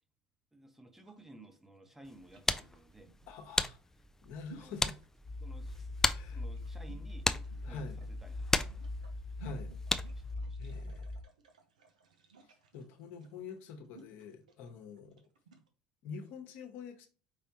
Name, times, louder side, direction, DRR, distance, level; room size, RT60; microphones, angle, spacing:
voice 1, 0.5-3.1 4.5-4.8 5.4-5.9 6.2-7.3 7.7-8.6 10.2-10.9, right 1 dB, 10° right, 1.0 m, -55 dB
sound 1, 0.9-15.7, right 5 dB, 90° right, 0.7 m, -59 dB
sound 2, 2.0-10.3, left 2 dB, 10° left, 0.4 m, -36 dB
voice 2, 3.3-3.8 4.2-4.9 6.0-6.4 7.6-8.0 9.4-9.7 10.6-11.1 12.7-15.2 16.0-17.1, left 5 dB, 65° left, 1.0 m, -46 dB
sound 3, 5.2-11.2, left 2 dB, 35° left, 1.0 m, -41 dB
5.0 x 3.4 x 2.8 m
hypercardioid pair, 70°, 4 cm